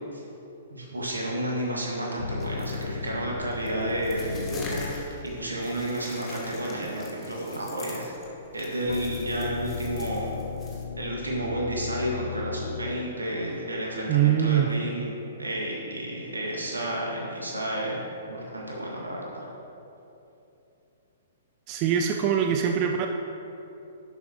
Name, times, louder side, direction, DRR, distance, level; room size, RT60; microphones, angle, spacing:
voice 1, 0.7-8.1 8.5-10.3 11.0-15.1 15.4-18.0 18.3-19.5, right 1 dB, 75° right, -3 dB, 1.9 m, -31 dB
sound 1, 2.2-5.3 8.9-13.5, left 6 dB, 65° left, 0.3 m, -36 dB
sound 2, 2.4-10.8, left 3 dB, 20° left, 1.4 m, -45 dB
voice 2, 14.1-14.7 21.7-23.1, right 9 dB, 30° right, 4 dB, 0.4 m, -23 dB
11.0 x 7.6 x 3.1 m, 3.0 s
figure-of-eight pair, 115°, 0 cm